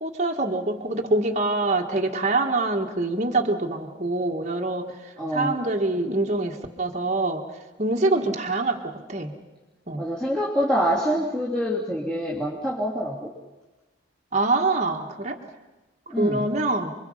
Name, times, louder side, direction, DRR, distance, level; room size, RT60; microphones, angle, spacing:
voice 1, 0.0-4.9 5.3-7.4 7.8-9.3 9.9-10.0 14.3-15.4 16.2-16.9, right 2 dB, 35° right, 2 dB, 1.9 m, -25 dB
voice 2, 5.2-5.6 10.0-13.3 16.1-16.5, equal, 5° left, -6 dB, 3.0 m, -26 dB
30.0 x 23.0 x 5.7 m, 1.1 s
head